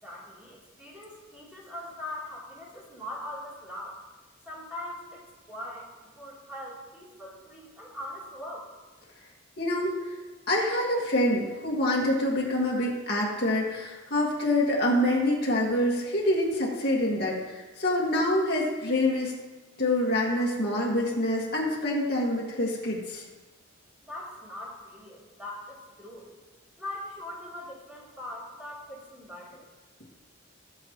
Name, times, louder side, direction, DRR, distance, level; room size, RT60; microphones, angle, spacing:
voice 1, 0.0-4.0 4.4-5.2 5.5-5.9 6.1-8.7 24.0-26.3 26.8-29.6, left 1 dB, 5° right, -7 dB, 3.4 m, -41 dB
voice 2, 9.6-10.2 10.5-19.3 19.8-23.2, left 1 dB, 50° left, -3 dB, 2.0 m, -26 dB
22.0 x 7.7 x 3.1 m, 1.3 s
head